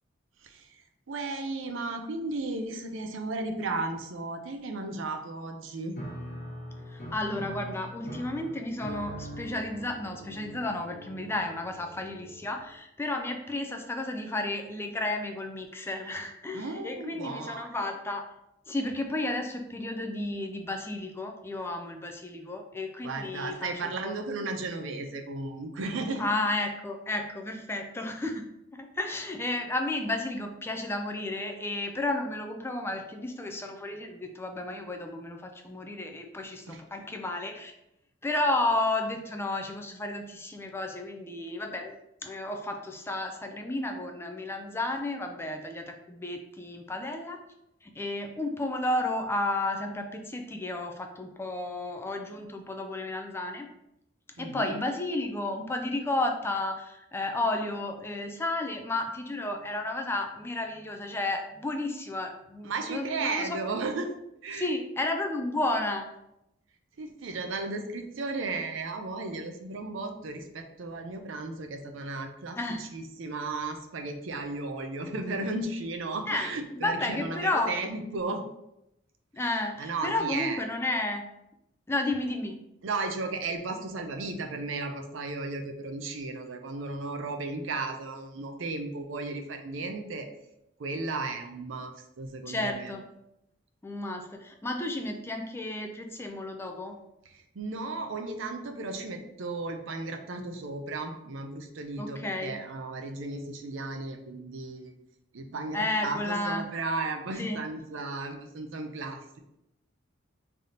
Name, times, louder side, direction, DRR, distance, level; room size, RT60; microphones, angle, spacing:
voice 1, 0.4-0.8 1.1-6.0 16.5-17.7 23.0-26.3 36.7-36.8 54.4-54.8 62.6-64.1 64.4-64.7 67.0-78.4 79.8-80.6 82.8-90.3 90.8-92.9 97.3-104.9 105.3-109.4, right 3 dB, 70° right, 5 dB, 0.5 m, -35 dB
Piano, 6.0-12.7, equal, 40° left, 0.9 m, -42 dB
voice 2, 6.9-18.2 18.7-24.1 26.2-37.7 38.2-41.9 42.2-47.4 47.8-53.7 54.4-63.6 64.5-66.1 72.6-72.8 76.3-77.7 79.3-81.2 81.9-82.6 92.5-93.0 93.8-97.0 102.0-102.6 105.7-106.7 107.4-107.6, left 2 dB, 10° left, 4 dB, 0.3 m, -32 dB
3.4 x 2.8 x 3.8 m, 0.84 s
head